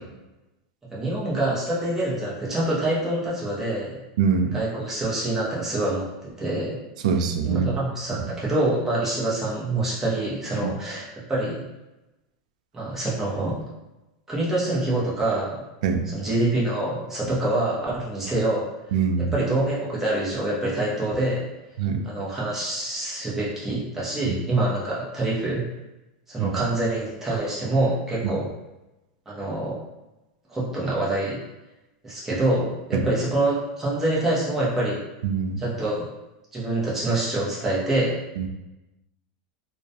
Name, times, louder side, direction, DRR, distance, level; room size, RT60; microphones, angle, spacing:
voice 1, 0.9-4.0 4.5-6.8 7.4-11.6 12.7-13.6 14.3-15.6 16.1-18.7 19.2-21.5 22.0-25.6 26.3-28.5 29.3-29.7 30.5-31.4 32.0-35.0 35.6-36.1 36.5-38.2, right 2 dB, 10° right, -7 dB, 0.7 m, -26 dB
voice 2, 4.2-4.6 7.0-7.7 8.1-8.2 15.8-16.0 18.9-19.3 21.8-22.0 24.3-24.4 26.4-26.5 32.9-33.0 35.2-35.6 38.4-38.5, right 6 dB, 75° right, 5 dB, 0.3 m, -23 dB
2.3 x 2.1 x 2.7 m, 1.0 s
supercardioid pair, 155°, 4 cm